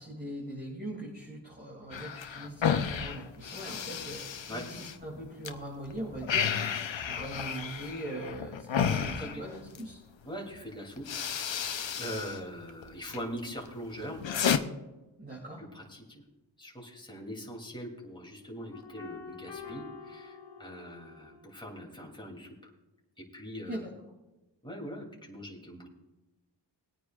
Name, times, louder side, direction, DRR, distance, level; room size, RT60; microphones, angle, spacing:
voice 1, 0.0-6.5 7.0-10.0 15.2-15.6 23.6-23.8, right 1 dB, 20° right, -3 dB, 2.8 m, -40 dB
sound 1, 1.9-5.5 5.9-9.9 10.6-10.7 11.0-12.4 12.7-13.2 13.7-14.6, left 8 dB, 85° left, 0.8 m, -32 dB
voice 2, 10.2-14.2 15.7-16.0 16.6-22.7 23.2-23.9 24.6-25.9, equal, 10° left, -2 dB, 3.0 m, -42 dB
sound 2, 18.7-21.6, left 5 dB, 65° left, 2.2 m, -46 dB
21.5 x 9.2 x 2.5 m, 1.1 s
wide cardioid pair, 65°, 44 cm